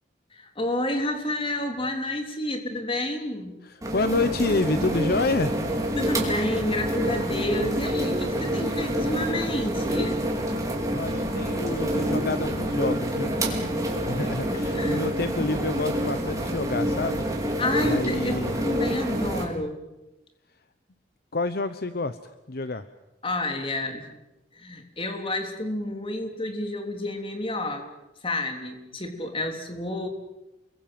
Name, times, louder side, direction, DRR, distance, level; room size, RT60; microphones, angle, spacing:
voice 1, 0.3-3.6 5.9-10.2 14.5-15.0 17.6-19.8 23.2-24.0 24.6-27.9 28.2-30.1, left 1 dB, 30° left, 5 dB, 3.5 m, -30 dB
voice 2, 3.6-5.6 10.9-13.4 13.8-17.2 17.8-18.6 21.3-22.2 22.5-22.8, left 3 dB, 55° left, 11 dB, 1.0 m, -28 dB
sound 1, 3.8-19.4, equal, 20° right, 4.8 m, -27 dB
29.0 x 22.0 x 7.7 m, 0.98 s
head